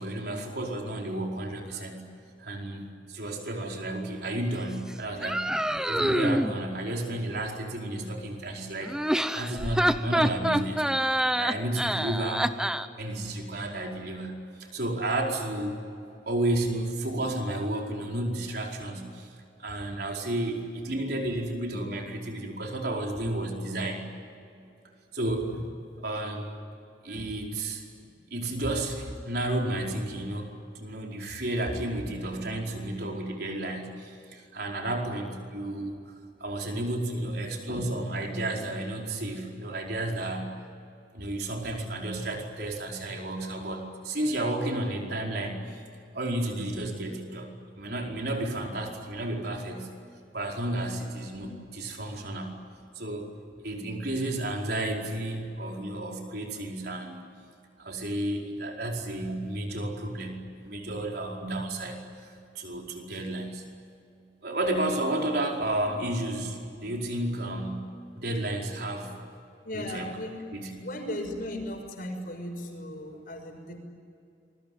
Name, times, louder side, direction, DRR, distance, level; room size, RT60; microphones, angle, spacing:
voice 1, 0.0-2.0 2.4-9.0 9.3-10.9 11.4-12.5 12.9-15.8 16.3-19.3 19.6-24.1 25.1-25.7 26.0-26.5 27.0-36.0 36.4-40.5 41.1-45.8 46.1-49.9 50.3-52.6 52.9-53.4 53.6-57.2 57.8-63.6 64.4-69.2 69.7-70.1 70.5-70.9, right 1 dB, 55° right, 1 dB, 4.8 m, -32 dB
sound 1, 5.2-6.5 8.8-12.9, equal, 5° right, 0.8 m, -26 dB
voice 2, 69.6-73.8, left 1 dB, 50° left, 4 dB, 6.1 m, -37 dB
27.5 x 23.0 x 9.4 m, 2.5 s
head